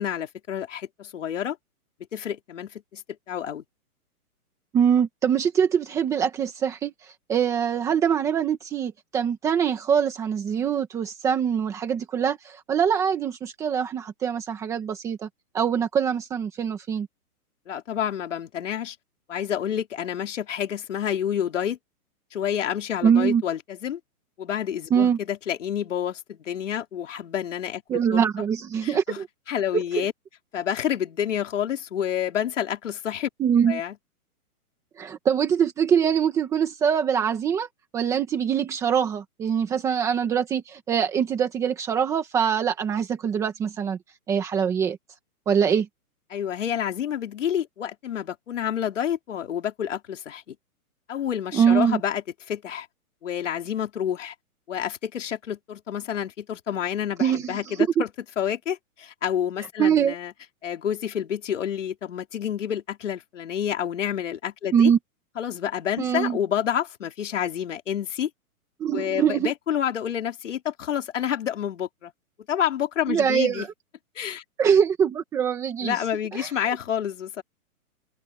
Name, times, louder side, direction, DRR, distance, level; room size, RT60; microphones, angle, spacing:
voice 1, 0.0-1.6 2.1-3.0 3.3-3.6 17.7-19.0 19.3-21.8 22.3-24.0 24.4-28.3 28.8-29.2 29.5-30.1 30.5-33.3 33.7-34.0 46.3-50.6 51.1-52.9 53.2-54.3 54.7-58.1 58.4-60.3 60.6-64.9 65.4-68.3 68.9-72.1 72.5-73.7 74.2-74.4 75.8-77.4, left 9 dB, 55° left, 4.2 m, -29 dB
voice 2, 4.7-6.9 7.3-15.3 15.5-17.1 23.0-23.4 24.9-25.2 27.9-29.3 29.7-30.1 33.4-33.8 35.0-37.7 37.9-44.0 44.3-45.0 45.5-45.9 51.5-52.0 57.2-57.5 58.0-58.1 59.8-60.1 64.7-65.0 66.0-66.4 68.8-69.5 73.1-73.7 74.6-76.0 76.3-76.5, right 8 dB, 5° right, 1.5 m, -23 dB
hypercardioid pair, 180°, 45 cm